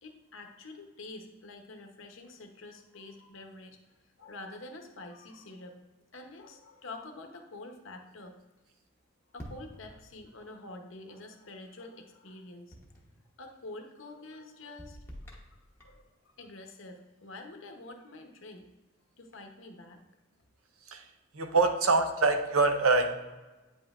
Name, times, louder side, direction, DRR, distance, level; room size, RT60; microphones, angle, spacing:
voice 1, 0.0-3.8 4.2-5.8 6.1-8.3 9.3-12.7 13.4-15.0 15.8-18.7 19.2-20.0, left 2 dB, 65° left, 4 dB, 0.8 m, -47 dB
sound 1, 9.4-10.4 12.7-13.3 14.8-16.1, equal, 10° left, 0.9 m, -48 dB
voice 2, 21.3-23.1, right 3 dB, 75° right, 6 dB, 0.7 m, -24 dB
8.8 x 5.2 x 2.4 m, 1.1 s
head